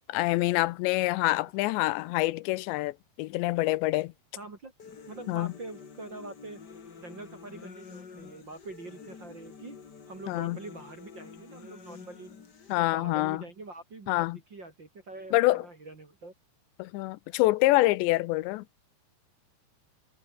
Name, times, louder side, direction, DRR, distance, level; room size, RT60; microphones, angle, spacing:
voice 1, 0.1-4.1 5.3-5.5 10.3-10.6 12.7-13.4 14.1-14.4 15.3-15.7 16.8-18.6, left 19 dB, 85° left, 2.8 m, -26 dB
voice 2, 1.0-1.3 4.4-4.7 5.1-6.6 7.0-9.8 10.1-12.3 12.8-16.3, right 3 dB, 30° right, 2.4 m, -45 dB
sound 1, 4.8-12.8, left 5 dB, 40° left, 1.5 m, -48 dB
omnidirectional pair, 5.2 m